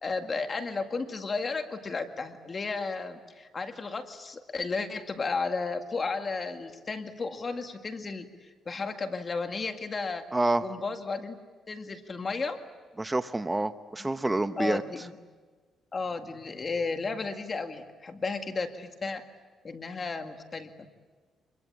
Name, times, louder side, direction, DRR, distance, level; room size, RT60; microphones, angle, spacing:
voice 1, 0.0-8.3 8.7-10.2 10.6-11.4 11.7-12.6 14.0-14.1 14.6-15.2 15.9-19.3 19.6-20.9, left 4 dB, 35° left, 6 dB, 2.1 m, -33 dB
voice 2, 10.3-10.6 13.0-14.8, right 2 dB, 15° right, 10 dB, 0.9 m, -27 dB
27.0 x 22.0 x 8.6 m, 1.4 s
cardioid pair, 90°, 0 cm